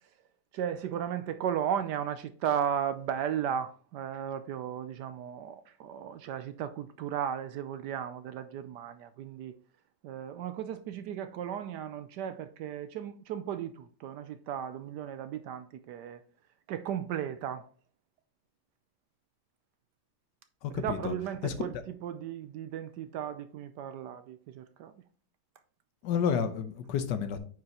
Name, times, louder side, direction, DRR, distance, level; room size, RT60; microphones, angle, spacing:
voice 1, 0.5-9.5 10.0-16.2 16.7-17.7 20.7-21.7 22.0-24.9, right 9 dB, 70° right, 1.0 m, -35 dB
voice 2, 20.6-21.1 21.4-21.5 26.0-27.4, left 7 dB, 70° left, 1.3 m, -30 dB
9.1 x 5.4 x 2.9 m
omnidirectional pair, 2.1 m